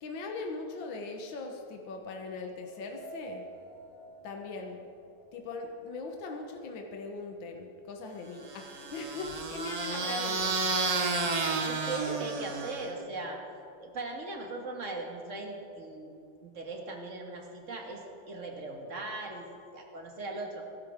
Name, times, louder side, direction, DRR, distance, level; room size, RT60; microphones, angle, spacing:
voice 1, 0.0-3.4 4.2-4.8 5.3-10.6, left 3 dB, 75° left, 2 dB, 1.8 m, -40 dB
sound 1, 2.6-6.7 7.0-7.1 8.1-8.2 8.6-12.4, right 4 dB, 20° left, 2.8 m, -51 dB
sound 2, 8.5-13.0, right 3 dB, 80° right, 0.3 m, -31 dB
voice 2, 11.6-13.4 13.8-16.1 16.4-18.0 18.3-19.5 19.7-20.7, right 2 dB, 40° right, 1 dB, 2.0 m, -39 dB
21.0 x 12.0 x 3.6 m, 2.6 s
omnidirectional pair, 2.1 m